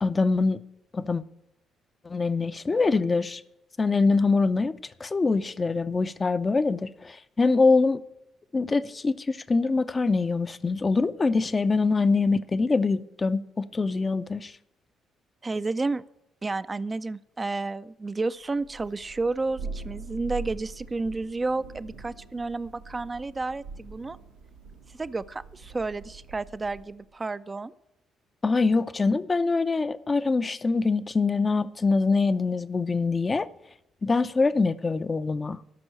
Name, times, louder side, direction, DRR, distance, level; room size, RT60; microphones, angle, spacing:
voice 1, 0.0-0.6 0.9-1.2 2.0-3.4 3.8-4.7 5.0-8.0 8.5-14.5 28.4-33.5 34.0-35.6, left 4 dB, 30° left, 0.6 m, -24 dB
voice 2, 15.4-16.0 16.4-24.2 24.9-27.7, right 3 dB, 30° right, 0.4 m, -31 dB
Thunder, 18.6-27.0, right 3 dB, 85° right, 1.5 m, -43 dB
12.5 x 6.1 x 8.8 m
figure-of-eight pair, 45°, 0 cm